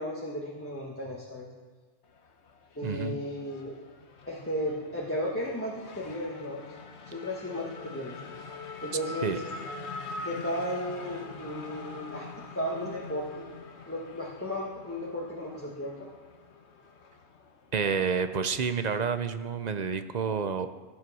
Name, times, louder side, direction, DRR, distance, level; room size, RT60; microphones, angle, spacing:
voice 1, 0.0-1.5 2.7-3.8 4.3-6.6 7.1-8.2 8.8-9.3 10.2-13.4 13.9-16.1, equal, 10° left, -4 dB, 1.4 m, -34 dB
Race car auto racing / Accelerating revving vroom, 2.0-19.0, left 4 dB, 70° left, 1.2 m, -44 dB
voice 2, 2.8-3.2 9.2-9.4 17.7-20.7, right 6 dB, 45° right, 10 dB, 0.6 m, -29 dB
14.0 x 7.8 x 6.2 m, 1.5 s
omnidirectional pair, 1.2 m